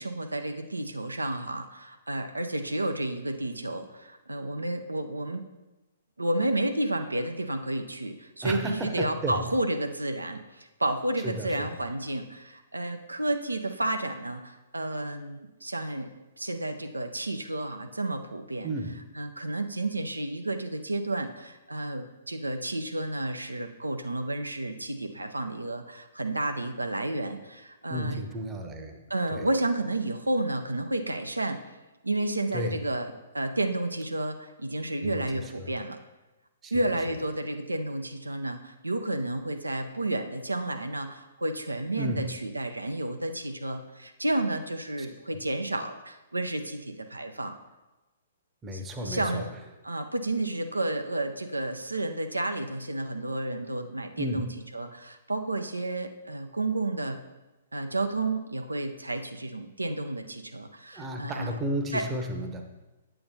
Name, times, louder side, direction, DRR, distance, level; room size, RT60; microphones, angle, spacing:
voice 1, 0.0-5.4 6.2-16.1 16.4-18.7 19.1-28.2 29.1-31.6 32.0-36.0 36.7-47.5 48.7-49.5 49.8-54.5 54.7-57.2 57.7-61.5 61.9-62.0, right 2 dB, 80° right, 6 dB, 0.6 m, -31 dB
voice 2, 8.4-9.4 11.2-11.7 18.6-19.0 27.9-29.0 29.3-29.5 32.5-32.8 35.0-35.7 36.6-36.7 42.0-42.3 48.6-49.4 54.2-54.5 60.9-62.6, equal, 15° right, 4 dB, 0.8 m, -33 dB
8.5 x 7.8 x 2.7 m, 1.1 s
figure-of-eight pair, 120°, 0 cm